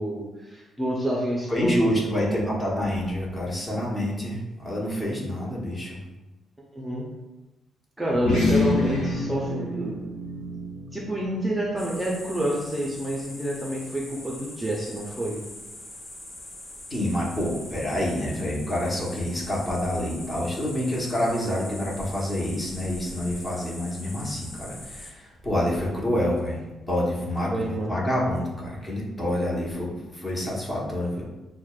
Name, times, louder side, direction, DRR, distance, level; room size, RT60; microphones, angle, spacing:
voice 1, 0.0-2.5 6.7-7.1 8.0-10.0 10.9-15.4 27.5-28.0, right 1 dB, 5° right, -4 dB, 0.6 m, -28 dB
voice 2, 1.5-6.0 16.9-31.2, left 1 dB, 25° left, -4 dB, 1.0 m, -27 dB
sound 1, 8.1-12.9, left 2 dB, 85° left, 0.9 m, -28 dB
sound 2, 11.8-25.1, left 1 dB, 60° left, 1.0 m, -42 dB
6.2 x 2.1 x 2.4 m, 1.1 s
cardioid pair, 125°, 0 cm